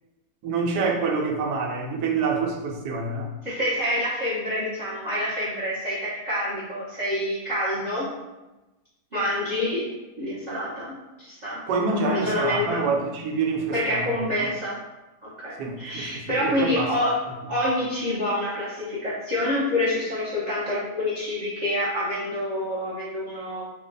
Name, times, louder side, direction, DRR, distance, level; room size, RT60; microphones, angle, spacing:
voice 1, 0.4-3.3 11.7-14.1 15.6-16.9, right 4 dB, 80° right, 1 dB, 1.2 m, -26 dB
voice 2, 3.4-8.1 9.1-9.9 10.2-11.6 11.9-12.9 13.7-14.8 15.2-23.7, left 1 dB, 45° right, -8 dB, 0.6 m, -27 dB
3.0 x 2.2 x 3.8 m, 1.1 s
omnidirectional pair, 1.8 m